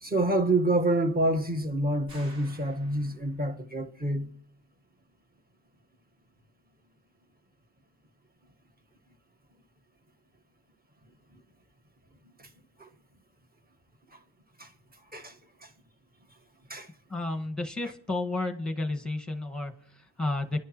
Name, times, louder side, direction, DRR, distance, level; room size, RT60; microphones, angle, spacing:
voice 1, 0.0-4.3 12.8-12.9 14.6-14.7 15.1-15.3 15.6-15.7 16.7-16.9, right 1 dB, 20° right, 1.5 m, -27 dB
sound 1, 2.1-3.6, right 2 dB, 45° right, 4.7 m, -52 dB
voice 2, 17.1-20.6, left 2 dB, ahead, 1.7 m, -32 dB
27.0 x 11.0 x 3.1 m
supercardioid pair, 65°, 48 cm